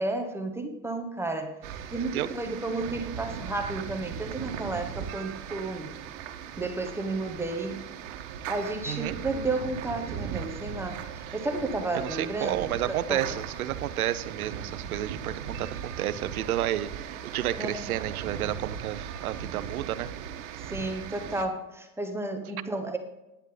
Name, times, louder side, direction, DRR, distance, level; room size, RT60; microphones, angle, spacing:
voice 1, 0.0-1.6 1.9-5.9 6.6-7.9 8.5-13.2 17.6-17.9 20.6-23.0, right 2 dB, 5° right, 4 dB, 1.1 m, -32 dB
sound 1, 1.6-21.4, right 8 dB, 55° right, 1.5 m, -38 dB
voice 2, 11.9-20.1, right 12 dB, 85° right, 13 dB, 0.9 m, -31 dB
11.0 x 10.0 x 3.9 m, 0.97 s
supercardioid pair, 135°, 42 cm